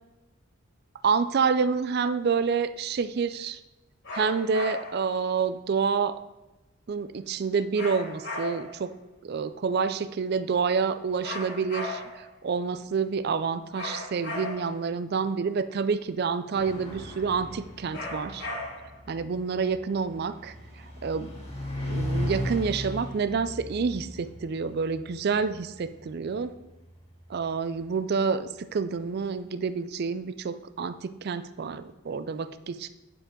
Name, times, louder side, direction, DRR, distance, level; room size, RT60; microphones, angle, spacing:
voice 1, 1.0-3.6 4.1-6.2 6.9-8.9 9.2-18.5 19.1-21.3 21.8-26.5 27.3-32.9, right 5 dB, 45° right, 13 dB, 0.4 m, -28 dB
sound 1, 4.0-5.1 7.7-8.8 11.2-12.3 13.8-14.8 17.9-19.0, left 2 dB, 55° left, 2.5 m, -36 dB
sound 2, 16.5-27.5, left 1 dB, 25° left, 2.4 m, -37 dB
9.0 x 7.5 x 3.7 m, 1.0 s
head